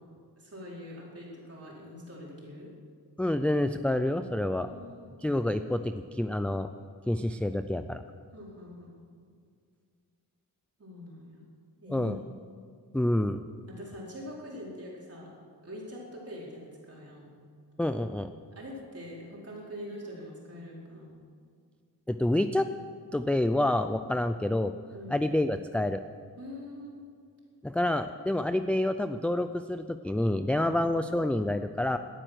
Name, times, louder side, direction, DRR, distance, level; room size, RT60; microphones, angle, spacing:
voice 1, 0.4-2.7 4.5-5.1 8.3-9.0 10.8-11.4 11.8-12.2 13.7-15.3 15.6-17.2 18.5-21.1 24.9-25.2 26.4-27.0 30.6-30.8, left 1 dB, 35° right, -4 dB, 4.5 m, -44 dB
voice 2, 3.2-4.7 5.2-6.7 7.1-8.0 11.9-12.2 12.9-13.4 17.8-18.3 22.1-22.7 23.1-24.7 25.1-26.0 27.6-32.0, left 1 dB, 5° left, 9 dB, 0.3 m, -28 dB
18.0 x 12.5 x 6.3 m, 2.2 s
wide cardioid pair, 155°, 40 cm